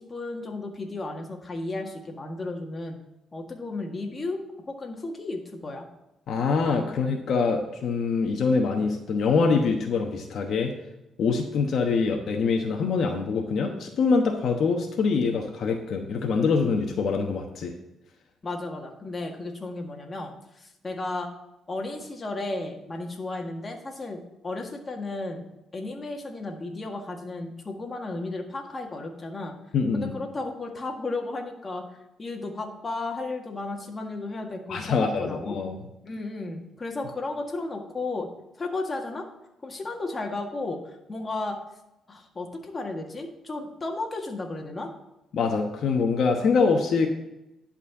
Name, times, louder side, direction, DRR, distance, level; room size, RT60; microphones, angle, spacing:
voice 1, 0.0-3.0 3.3-5.9 18.4-21.3 21.7-25.5 25.7-29.5 29.9-31.8 32.2-35.5 36.0-38.3 38.6-39.3 39.6-41.6 42.1-44.9, left 2 dB, 30° left, 2 dB, 1.7 m, -34 dB
voice 2, 6.3-10.7 11.2-17.7 29.7-30.1 34.7-35.8 45.3-47.1, left 4 dB, 65° left, 3 dB, 1.1 m, -24 dB
11.0 x 4.3 x 7.1 m, 0.91 s
cardioid pair, 90°, 0 cm